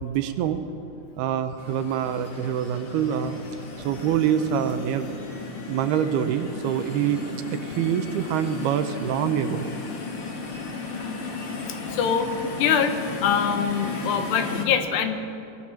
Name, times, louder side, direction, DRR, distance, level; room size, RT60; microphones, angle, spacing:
voice 1, 0.0-0.6 1.2-3.4 3.8-5.2 5.7-9.7, right 9 dB, 75° right, 9 dB, 2.7 m, -25 dB
sound 1, 1.6-14.7, left 4 dB, 40° left, 2.5 m, -35 dB
voice 2, 11.9-12.3 12.6-15.2, left 7 dB, 80° left, 7 dB, 3.4 m, -24 dB
23.0 x 20.0 x 7.4 m, 2.7 s
omnidirectional pair, 4.9 m